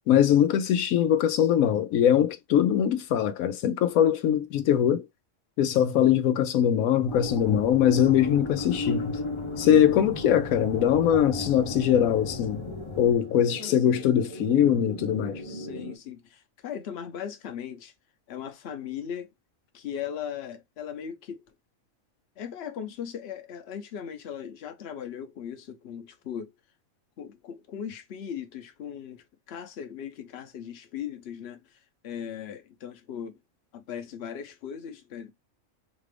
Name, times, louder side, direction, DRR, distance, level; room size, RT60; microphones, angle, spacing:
voice 1, 0.1-5.1 5.6-9.2 9.6-12.6 13.0-15.4, left 9 dB, 85° left, 1.0 m, -22 dB
sound 1, 7.1-13.1, left 2 dB, 30° left, 0.5 m, -34 dB
sound 2, 7.6-16.0, right 1 dB, 80° right, 3.1 m, -44 dB
voice 2, 15.4-17.9 18.3-19.3 19.7-21.4 22.4-26.5 27.2-33.4 33.7-35.3, left 8 dB, 55° left, 0.9 m, -38 dB
5.0 x 2.4 x 3.3 m
omnidirectional pair, 1.4 m